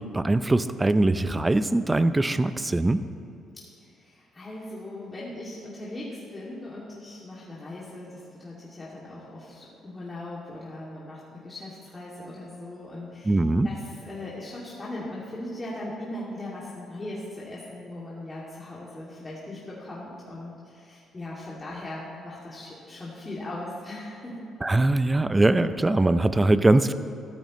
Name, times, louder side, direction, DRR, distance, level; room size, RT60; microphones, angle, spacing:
voice 1, 0.0-3.0 13.2-13.7 24.6-26.9, right 2 dB, 20° right, 12 dB, 0.6 m, -22 dB
voice 2, 4.0-13.4 13.6-24.4, left 1 dB, 25° left, -7 dB, 2.5 m, -39 dB
14.0 x 13.0 x 3.2 m, 2.7 s
supercardioid pair, 65°, 0 cm